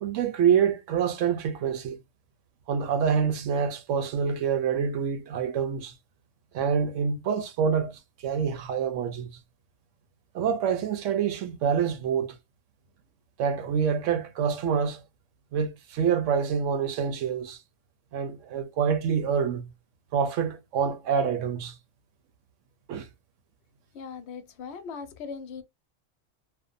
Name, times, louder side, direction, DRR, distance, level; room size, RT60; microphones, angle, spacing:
voice 1, 0.0-2.0 2.7-5.9 6.5-9.3 10.3-12.4 13.4-15.0 15.5-17.6 18.1-19.7 20.1-21.8 22.9-23.1, right 7 dB, 80° right, 1.0 m, -26 dB
voice 2, 23.9-25.6, left 5 dB, 65° left, 0.8 m, -39 dB
2.6 x 2.2 x 2.5 m
omnidirectional pair, 1.3 m